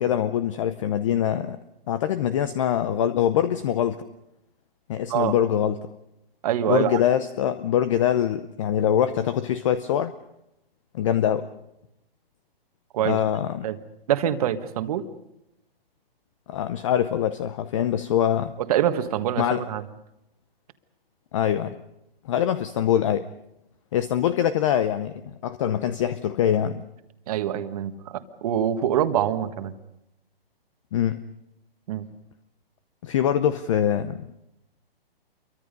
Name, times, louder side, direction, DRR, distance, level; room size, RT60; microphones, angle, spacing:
voice 1, 0.0-1.6 1.9-4.0 4.9-5.9 6.7-10.1 10.9-11.5 13.0-13.7 16.5-18.5 19.4-19.6 21.3-21.8 22.2-23.3 23.9-26.9 30.9-31.2 33.0-34.3, left 10 dB, 30° left, 0.7 m, -24 dB
voice 2, 6.4-7.0 12.9-13.2 13.6-13.8 14.1-15.1 18.7-19.8 27.3-29.7 31.9-32.1, right 10 dB, 40° right, 1.6 m, -25 dB
28.0 x 23.5 x 5.3 m
hypercardioid pair, 155°, 30 cm